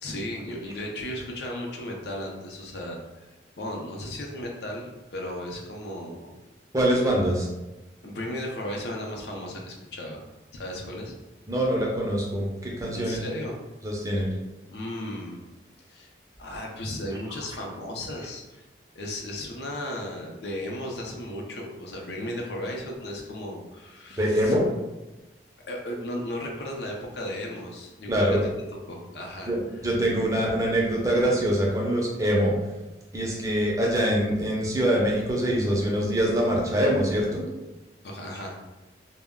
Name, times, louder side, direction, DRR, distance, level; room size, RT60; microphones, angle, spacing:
voice 1, 0.0-3.3 3.6-6.2 8.0-10.2 10.5-11.1 12.9-13.6 14.7-15.4 15.9-16.1 16.4-18.4 19.0-24.5 25.7-28.1 28.9-29.8 38.0-38.6, left 1 dB, 70° left, 0 dB, 0.5 m, -35 dB
voice 2, 6.7-7.5 11.5-13.2 13.8-14.3 24.2-24.7 28.1-28.4 29.5-32.5 33.1-37.4, equal, 20° right, -3 dB, 0.4 m, -24 dB
2.2 x 2.1 x 3.5 m, 1.1 s
head